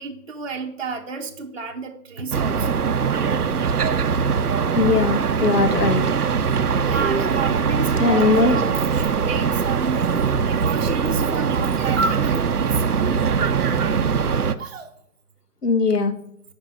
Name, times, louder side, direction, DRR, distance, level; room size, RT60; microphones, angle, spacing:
voice 1, 0.0-2.8 6.8-12.8 14.6-14.9, right 4 dB, 40° right, 0 dB, 0.9 m, -30 dB
sound 1, 2.3-14.5, right 6 dB, 70° right, 0.8 m, -21 dB
voice 2, 4.7-6.0 8.0-8.6 15.6-16.1, left 4 dB, 75° left, 9 dB, 1.6 m, -19 dB
9.9 x 5.4 x 6.5 m, 0.69 s
hypercardioid pair, 170°, 47 cm